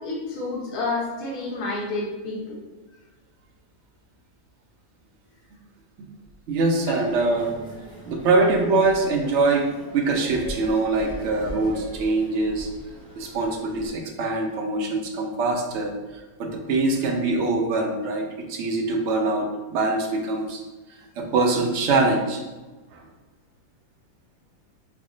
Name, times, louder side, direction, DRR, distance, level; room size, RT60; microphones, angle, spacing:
voice 1, 0.0-2.6 6.9-7.0, left 3 dB, 90° left, -3 dB, 1.3 m, -29 dB
voice 2, 6.5-7.5 8.1-9.7 9.9-12.7 13.2-20.6 21.2-22.4 22.9-23.0, right 3 dB, 65° right, 2 dB, 0.7 m, -23 dB
sound 1, 7.1-13.9, right 1 dB, 5° left, 0.4 m, -39 dB
3.5 x 2.0 x 3.7 m, 1.2 s
omnidirectional pair, 1.6 m